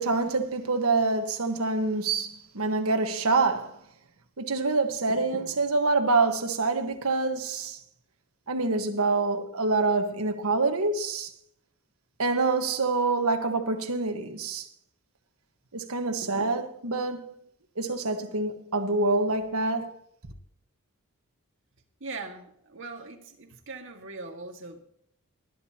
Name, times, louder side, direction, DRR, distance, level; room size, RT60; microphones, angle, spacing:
voice 1, 0.0-3.8 4.4-7.8 8.5-11.3 12.2-14.7 15.7-17.3 17.8-19.9, right 3 dB, 80° right, 1.5 m, -26 dB
voice 2, 22.0-24.8, right 3 dB, 55° right, 1.9 m, -40 dB
19.5 x 10.5 x 2.9 m
head